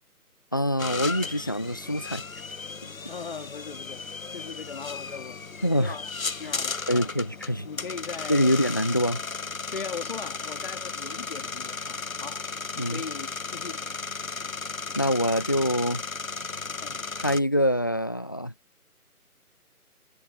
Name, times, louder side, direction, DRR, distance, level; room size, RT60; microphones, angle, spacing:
voice 1, 0.5-2.2 5.6-5.9 6.9-7.7 8.3-9.2 12.8-13.0 15.0-16.0 17.2-18.5, equal, 15° left, 0.9 m, -25 dB
sound 1, 0.8-17.4, left 4 dB, 60° left, 1.4 m, -35 dB
voice 2, 3.1-4.0 4.3-5.4 5.8-6.1 6.4-7.1 7.6-8.8 9.7-12.5 12.7-13.8 16.8-17.0, left 5 dB, 35° left, 3.5 m, -39 dB
figure-of-eight pair, 155°, 45 cm